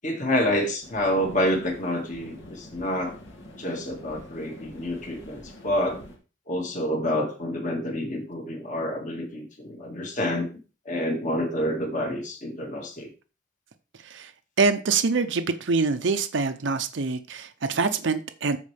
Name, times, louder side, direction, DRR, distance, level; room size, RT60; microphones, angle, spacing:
voice 1, 0.0-3.1 3.6-6.0 6.5-10.5 10.9-13.1, left 1 dB, 40° left, 1.9 m, -28 dB
sound 1, 0.8-6.2, left 1 dB, 75° left, 2.3 m, -46 dB
voice 2, 14.6-18.6, right 4 dB, 65° right, 0.6 m, -25 dB
14.0 x 4.6 x 3.4 m
head